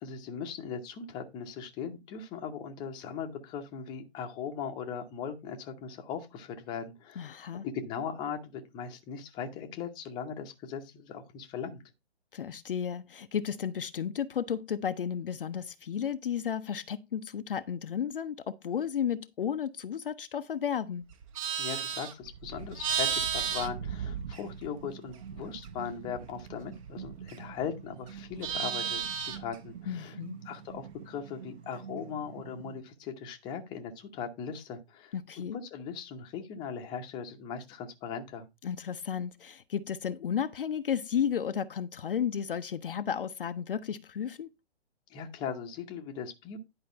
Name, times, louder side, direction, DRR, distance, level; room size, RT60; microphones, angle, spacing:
voice 1, 0.0-7.4 7.6-11.8 21.6-30.2 30.4-35.1 35.5-38.5 45.1-46.6, left 7 dB, 15° left, 0.8 m, -39 dB
voice 2, 7.2-7.7 12.3-21.1 29.9-30.4 35.1-35.6 38.6-44.5, left 8 dB, 55° left, 0.6 m, -33 dB
Livestock farm animals working animals, 21.1-24.8 25.1-27.7 28.0-29.6, right 8 dB, 30° right, 1.0 m, -34 dB
sound 1, 23.4-32.8, right 8 dB, 65° right, 1.2 m, -47 dB
10.5 x 5.0 x 4.3 m
figure-of-eight pair, 135°, 34 cm